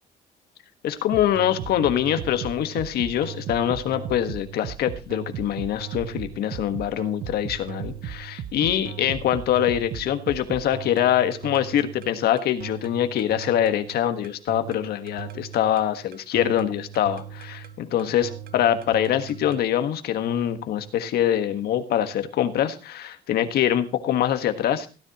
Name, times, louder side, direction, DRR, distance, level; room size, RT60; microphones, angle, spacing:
voice 1, 0.8-24.9, left 10 dB, 70° left, 9 dB, 1.5 m, -24 dB
sound 1, 1.1-19.6, right 9 dB, 60° right, 1.0 m, -37 dB
17.0 x 10.0 x 3.0 m, 0.32 s
cardioid pair, 110°, 17 cm